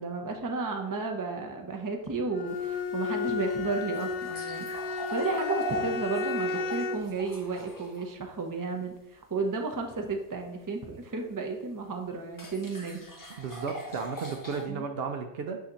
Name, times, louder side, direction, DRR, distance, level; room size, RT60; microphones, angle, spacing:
voice 1, 0.0-4.7 5.1-13.1 14.7-14.9, right 4 dB, 20° right, 3 dB, 0.6 m, -33 dB
Bowed string instrument, 2.3-7.2, left 4 dB, 60° left, 0.6 m, -33 dB
sound 1, 2.5-8.1 11.2-11.3 12.3-14.6, equal, 20° left, 1.0 m, -39 dB
voice 2, 13.4-15.6, right 5 dB, 65° right, 5 dB, 0.8 m, -34 dB
6.3 x 2.9 x 5.6 m, 0.93 s
omnidirectional pair, 1.2 m